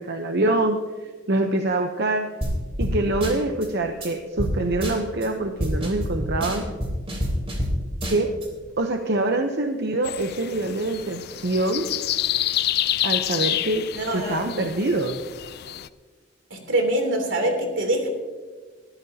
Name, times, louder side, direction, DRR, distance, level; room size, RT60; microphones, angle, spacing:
voice 1, 0.0-2.3 2.8-6.6 8.1-8.3 8.8-11.9 13.0-15.2, right 2 dB, 60° right, 4 dB, 0.9 m, -25 dB
sound 1, 2.4-2.5 2.8-2.9 3.2-3.7 4.0-4.1 4.4-4.5 4.8-5.3 5.6-7.7 8.0-8.5, equal, 30° right, 3.4 m, -27 dB
sound 2, 10.0-15.9, left 12 dB, 55° left, 0.4 m, -28 dB
voice 2, 13.9-14.5 16.5-18.1, right 1 dB, 75° right, 3 dB, 3.3 m, -24 dB
21.0 x 14.0 x 2.9 m, 1.4 s
head